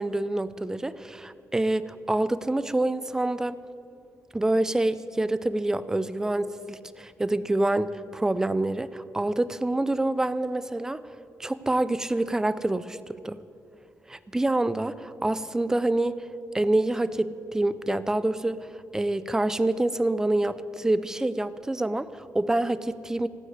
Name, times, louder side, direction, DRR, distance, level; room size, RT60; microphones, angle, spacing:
voice 1, 0.0-3.6 4.3-11.0 11.4-13.4 14.1-16.2 16.5-18.7 18.9-23.3, right 2 dB, 10° right, 15 dB, 0.4 m, -26 dB
14.5 x 9.8 x 9.4 m, 2.7 s
wide cardioid pair, 150°, 6 cm